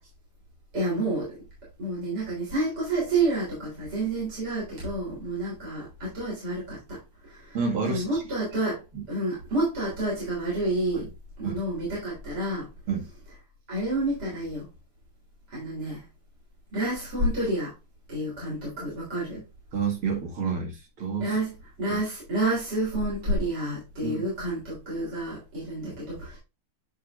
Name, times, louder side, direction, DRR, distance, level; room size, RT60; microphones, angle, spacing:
voice 1, 0.7-1.4 1.8-7.0 7.2-7.6 7.8-11.1 11.4-12.7 13.7-14.7 15.5-16.0 16.7-17.7 18.1-19.4 21.2-21.5 21.8-26.4, right 1 dB, 50° right, -7 dB, 4.2 m, -29 dB
voice 2, 7.5-8.2 8.9-9.0 10.9-11.1 11.4-11.6 12.9-13.1 19.7-21.3 21.9-22.0 24.0-24.3 25.8-25.9, right 5 dB, 80° right, 1 dB, 3.0 m, -29 dB
9.6 x 4.9 x 2.5 m, 0.26 s
omnidirectional pair, 2.3 m